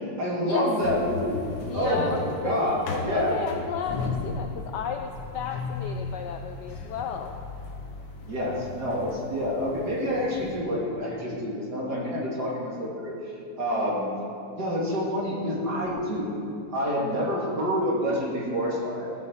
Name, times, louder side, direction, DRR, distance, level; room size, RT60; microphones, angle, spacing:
voice 1, 0.2-1.5 1.7-3.3 8.2-14.1 14.5-16.3 16.7-19.1, equal, 50° right, -5 dB, 2.8 m, -27 dB
sound 1, 0.8-10.6, left 3 dB, 55° left, 1.5 m, -36 dB
voice 2, 1.6-7.4 13.7-13.8, left 7 dB, 75° left, 5 dB, 1.0 m, -34 dB
16.0 x 7.6 x 4.5 m, 2.7 s
omnidirectional pair, 2.3 m